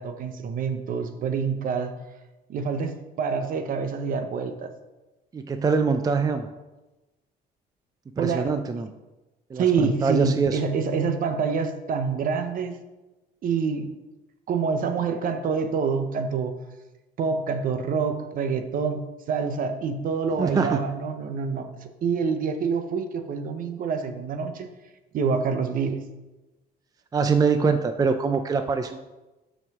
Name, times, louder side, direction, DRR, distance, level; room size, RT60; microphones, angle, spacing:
voice 1, 0.0-1.9 2.5-4.7 8.2-8.8 9.6-12.8 13.4-13.9 14.5-16.5 17.2-24.7 25.1-26.0, right 5 dB, 55° right, 8 dB, 0.9 m, -27 dB
voice 2, 5.3-6.5 8.2-8.9 9.5-10.6 20.4-20.8 27.1-29.0, right 5 dB, 20° right, 8 dB, 0.5 m, -23 dB
5.7 x 5.6 x 6.0 m, 1.1 s
cardioid pair, 110°, 17 cm